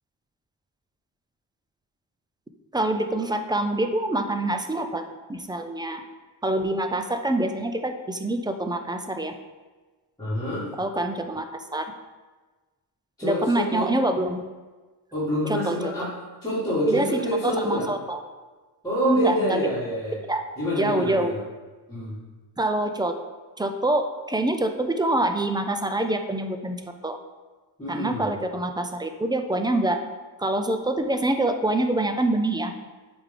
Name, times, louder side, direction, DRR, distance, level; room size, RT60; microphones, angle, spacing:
voice 1, 2.7-5.0 5.3-6.0 6.4-9.3 10.8-11.4 11.7-11.9 13.2-14.4 15.6-15.9 16.9-18.2 19.0-19.7 20.3-20.4 20.8-21.3 22.6-23.1 23.6-26.8 27.0-27.2 27.9-30.0 30.4-32.7, right 1 dB, 10° right, 6 dB, 0.3 m, -25 dB
voice 2, 10.2-10.7 13.2-13.9 15.1-16.1 16.4-17.9 18.8-20.2 20.6-21.4 21.9-22.2 27.8-28.4, equal, 10° left, -12 dB, 1.9 m, -27 dB
8.0 x 3.5 x 3.7 m, 1.3 s
wide cardioid pair, 110°, 47 cm